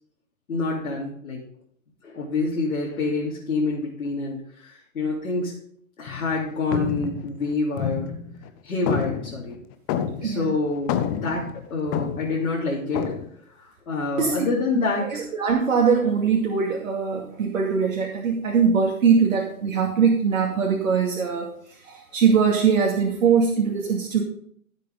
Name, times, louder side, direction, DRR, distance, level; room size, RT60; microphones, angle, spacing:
voice 1, 0.5-1.4 2.0-5.6 6.0-8.1 8.6-9.6 10.2-13.1 13.5-15.3, left 3 dB, 70° left, -4 dB, 3.1 m, -27 dB
sound 1, 6.1-6.4 6.7-8.5 8.9-10.5 10.7-12.4 12.9-13.3, left 8 dB, 15° left, 0.5 m, -28 dB
voice 2, 15.1-21.5 21.8-24.2, right 6 dB, 65° right, -1 dB, 2.5 m, -21 dB
15.0 x 7.8 x 3.9 m, 0.64 s
hypercardioid pair, 125°, 43 cm